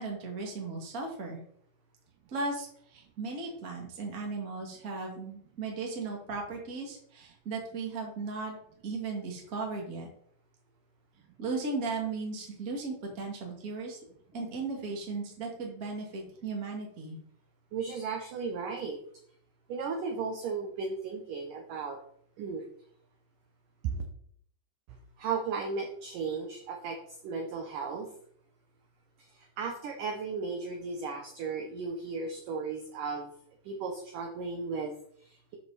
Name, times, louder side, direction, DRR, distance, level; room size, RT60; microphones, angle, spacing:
voice 1, 0.0-1.4 2.3-8.6 8.8-10.1 11.4-14.0 14.3-17.2, right 3 dB, 35° right, 0 dB, 1.4 m, -36 dB
voice 2, 17.7-19.0 19.7-22.0 22.4-22.6 23.8-24.1 24.9-28.1 29.2-33.3 33.6-35.6, right 5 dB, 75° right, 3 dB, 1.9 m, -35 dB
12.0 x 5.2 x 4.1 m, 0.64 s
omnidirectional pair, 5.0 m